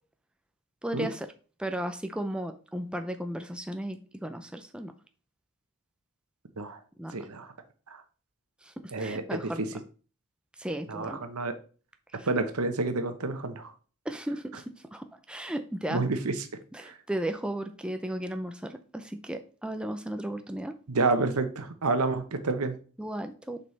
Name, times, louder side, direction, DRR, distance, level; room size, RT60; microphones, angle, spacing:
voice 1, 0.8-1.3 1.6-4.9 7.0-7.2 8.6-9.7 10.6-11.2 12.2-12.3 14.1-16.0 16.7-20.8 23.0-23.6, right 1 dB, 5° right, 6 dB, 0.5 m, -35 dB
voice 2, 7.1-7.5 8.9-9.7 10.9-11.5 12.3-13.7 15.9-16.3 20.9-22.8, right 3 dB, 85° right, 8 dB, 1.0 m, -29 dB
6.8 x 5.4 x 3.3 m, 0.38 s
head